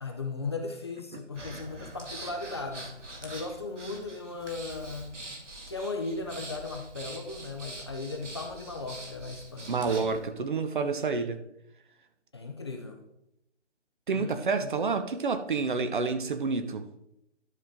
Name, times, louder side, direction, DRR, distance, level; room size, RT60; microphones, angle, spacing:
voice 1, 0.0-2.9 3.2-5.1 5.7-9.8 12.3-13.0 14.1-14.7, left 3 dB, 25° left, 3 dB, 0.6 m, -37 dB
Breathing, 1.3-10.2, right 1 dB, 85° right, 2.4 m, -44 dB
voice 2, 9.7-11.4 14.1-16.9, right 4 dB, 45° right, 9 dB, 0.9 m, -29 dB
11.5 x 5.7 x 3.7 m, 0.82 s
figure-of-eight pair, 150°, 35 cm